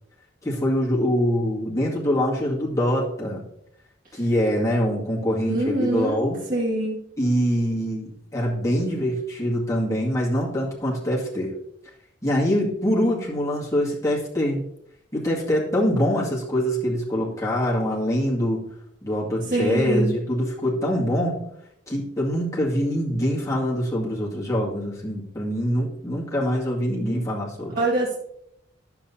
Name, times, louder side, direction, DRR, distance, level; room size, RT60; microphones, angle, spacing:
voice 1, 0.4-3.5 4.1-6.4 7.2-11.5 12.2-14.6 15.1-18.6 19.0-21.4 21.9-27.8, equal, 15° left, -5 dB, 2.1 m, -24 dB
voice 2, 5.5-6.2 6.5-7.0 19.4-20.1 27.7-28.2, right 1 dB, 50° right, -4 dB, 2.0 m, -24 dB
10.5 x 7.2 x 2.7 m, 0.74 s
head